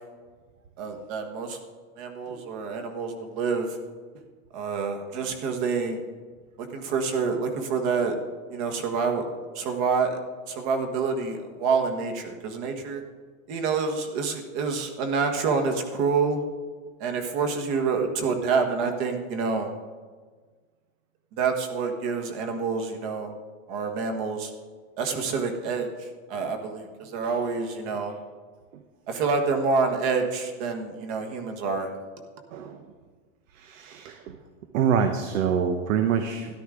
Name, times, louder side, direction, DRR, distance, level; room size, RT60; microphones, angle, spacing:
voice 1, 0.8-1.6 2.0-3.8 4.5-6.0 6.6-8.2 8.5-9.2 9.5-10.2 10.5-13.0 13.5-16.4 17.0-19.7 21.3-23.3 23.7-24.5 25.0-28.1 29.1-31.9, right 5 dB, 45° right, 4 dB, 1.5 m, -27 dB
voice 2, 33.6-34.2 34.7-36.5, right 7 dB, 85° right, 7 dB, 1.0 m, -25 dB
13.0 x 11.5 x 3.8 m, 1.5 s
supercardioid pair, 160°, 38 cm